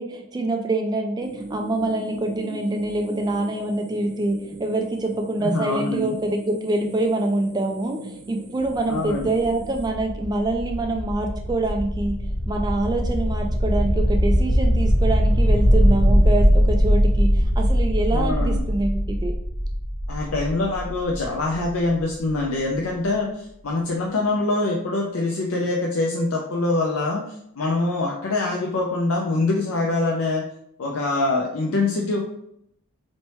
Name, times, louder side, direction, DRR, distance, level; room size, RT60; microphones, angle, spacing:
voice 1, 0.0-12.2 12.5-19.3, right 2 dB, 20° right, 3 dB, 0.3 m, -25 dB
sound 1, 1.2-9.9, right 2 dB, 35° right, 0.7 m, -39 dB
voice 2, 5.4-6.2 8.9-9.3 18.1-18.6 20.1-27.2 27.6-30.4 30.8-32.2, left 2 dB, 70° left, -1 dB, 0.5 m, -24 dB
sound 2, 8.6-22.3, equal, 85° left, 1.1 m, -21 dB
4.2 x 3.2 x 3.0 m, 0.73 s
head